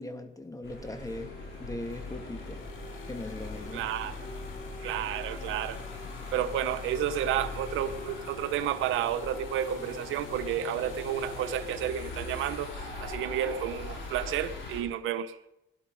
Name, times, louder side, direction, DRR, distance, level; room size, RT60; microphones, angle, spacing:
voice 1, 0.0-1.3 1.6-2.6 3.1-3.8, left 2 dB, 15° left, 2.1 m, -39 dB
sound 1, 0.6-14.8, left 3 dB, 65° left, 5.2 m, -41 dB
sound 2, 0.8-8.9, left 3 dB, 50° left, 2.7 m, -52 dB
sound 3, 1.8-12.1, left 6 dB, 85° left, 2.0 m, -51 dB
voice 2, 3.7-4.1 4.8-5.8 6.3-15.4, right 10 dB, 90° right, 0.9 m, -31 dB
17.5 x 12.0 x 5.4 m
cardioid pair, 90°, 20 cm